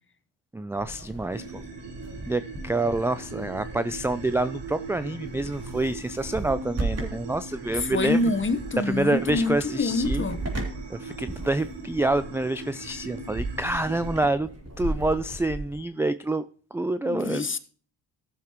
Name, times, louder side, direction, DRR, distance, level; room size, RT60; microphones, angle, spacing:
voice 1, 0.5-1.6 2.3-8.2 8.9-10.2 10.9-14.5 14.8-16.4 16.7-17.5, right 2 dB, 5° right, 0.4 m, -27 dB
sound 1, 0.8-15.8, right 2 dB, 35° right, 3.0 m, -37 dB
sound 2, 1.3-14.2, right 3 dB, 65° right, 2.7 m, -41 dB
voice 2, 7.7-10.4 17.0-17.6, left 3 dB, 25° left, 1.1 m, -26 dB
14.5 x 7.1 x 3.0 m
supercardioid pair, 65°, 46 cm